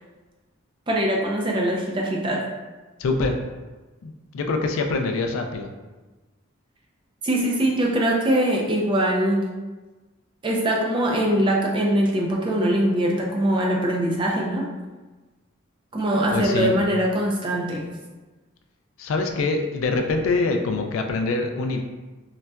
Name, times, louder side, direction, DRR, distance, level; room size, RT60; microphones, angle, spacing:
voice 1, 0.9-2.4 7.2-9.5 10.4-14.7 15.9-17.9, right 1 dB, 25° right, -1 dB, 0.4 m, -22 dB
voice 2, 3.0-3.4 4.0-5.7 16.3-16.7 19.0-21.8, left 3 dB, 80° left, 5 dB, 0.3 m, -24 dB
3.9 x 2.2 x 2.2 m, 1.2 s
head